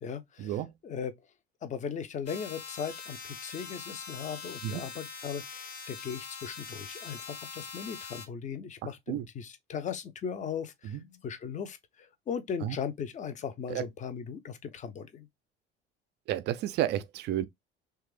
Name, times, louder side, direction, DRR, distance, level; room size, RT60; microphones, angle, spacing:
voice 1, 0.0-1.1 1.6-15.3, left 7 dB, 25° left, 0.5 m, -38 dB
sound 1, 2.3-8.3, left 5 dB, 75° left, 0.8 m, -43 dB
voice 2, 16.3-17.5, right 12 dB, 35° right, 0.4 m, -31 dB
3.1 x 2.3 x 3.1 m
figure-of-eight pair, 60°, 32 cm